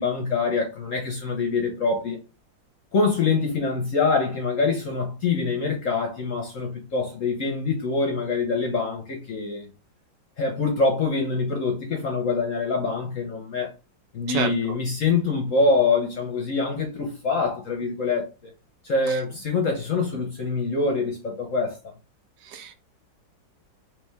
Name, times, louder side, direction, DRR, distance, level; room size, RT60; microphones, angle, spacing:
voice 1, 0.0-2.2 2.9-9.7 10.4-13.7 14.1-18.3 18.8-21.8, left 4 dB, 60° left, 0.9 m, -25 dB
voice 2, 14.3-14.7 19.1-19.2 22.4-22.7, right 7 dB, 70° right, 1.2 m, -30 dB
3.3 x 3.2 x 3.3 m
omnidirectional pair, 2.1 m